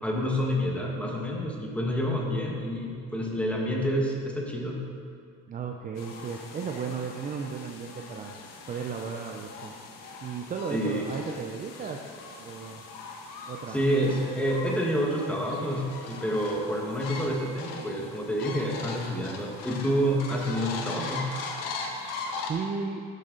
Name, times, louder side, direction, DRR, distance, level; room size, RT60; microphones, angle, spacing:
voice 1, 0.0-4.8 10.7-11.0 13.7-21.3, equal, 5° left, -1 dB, 1.3 m, -28 dB
voice 2, 5.5-8.4 8.7-9.7 10.2-12.1 12.4-12.9 13.5-13.8 22.5-23.0, right 5 dB, 25° right, 2 dB, 0.5 m, -35 dB
sound 1, 6.0-22.5, left 4 dB, 90° left, 1.4 m, -40 dB
11.5 x 11.0 x 3.9 m, 2.3 s
cardioid pair, 165°, 32 cm